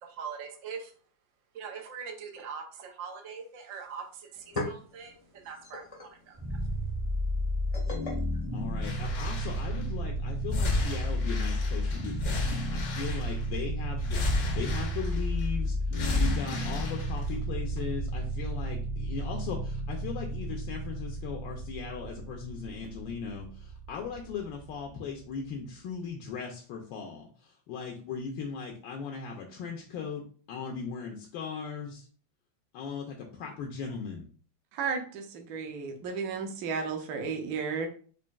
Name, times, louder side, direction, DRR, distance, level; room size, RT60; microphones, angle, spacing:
voice 1, 0.0-0.9 1.5-6.6, right 6 dB, 90° right, 3 dB, 0.6 m, -42 dB
sound 1, 3.8-3.9 4.2-9.4, left 2 dB, 40° left, 0.5 m, -42 dB
sound 2, 6.4-25.4, equal, 25° right, 0.6 m, -33 dB
voice 2, 8.5-30.2 30.5-32.1 32.7-34.3, left 6 dB, 80° left, 1 dB, 1.3 m, -38 dB
sound 3, 8.8-9.8 10.5-13.6 14.0-15.4 15.9-17.4 17.8-17.9, left 2 dB, 65° left, 0.8 m, -33 dB
voice 3, 34.7-37.9, right 5 dB, 65° right, 4 dB, 1.0 m, -33 dB
5.0 x 2.5 x 2.3 m, 0.42 s
omnidirectional pair, 2.1 m